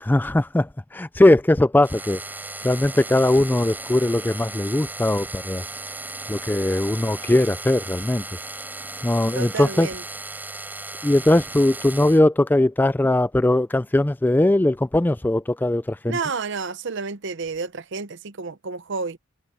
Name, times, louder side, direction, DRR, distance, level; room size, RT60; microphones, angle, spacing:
voice 1, 0.0-2.2 2.6-5.6 6.3-8.2 9.0-9.9 11.0-16.2, left 1 dB, 10° left, 0.3 m, -20 dB
sound 1, 1.8-12.2, right 2 dB, 10° right, 4.6 m, -36 dB
voice 2, 9.3-10.0 16.1-19.2, right 4 dB, 55° right, 0.8 m, -30 dB
head